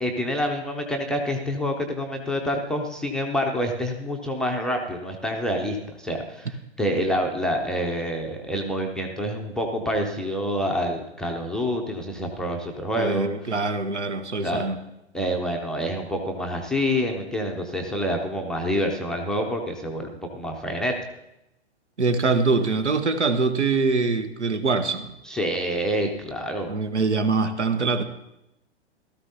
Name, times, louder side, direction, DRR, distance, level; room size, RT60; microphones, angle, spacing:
voice 1, 0.0-13.3 14.4-14.7 15.1-20.9 25.2-26.7, equal, ahead, 1 dB, 0.5 m, -27 dB
voice 2, 13.0-14.8 22.0-25.1 26.7-28.0, right 4 dB, 80° right, 10 dB, 1.1 m, -23 dB
16.0 x 13.0 x 2.7 m, 0.89 s
figure-of-eight pair, 115°, 35 cm